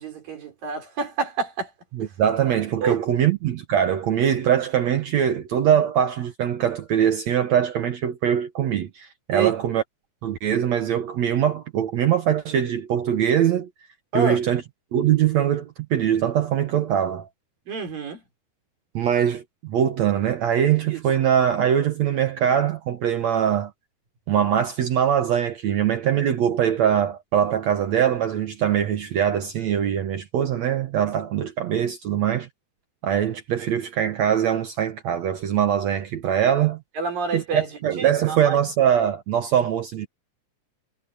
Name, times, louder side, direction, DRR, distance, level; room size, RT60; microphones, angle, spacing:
voice 1, 0.0-1.7 2.8-3.0 9.3-9.5 14.1-14.4 17.7-18.2 20.9-21.0 37.0-37.7 38.0-38.6, right 4 dB, 85° right, 6.8 m, -28 dB
voice 2, 1.9-9.8 10.2-13.7 14.1-14.6 14.9-17.3 18.9-23.7 24.3-32.5 33.0-36.8 37.3-40.1, right 9 dB, 65° right, 2.1 m, -22 dB
omnidirectional pair, 3.9 m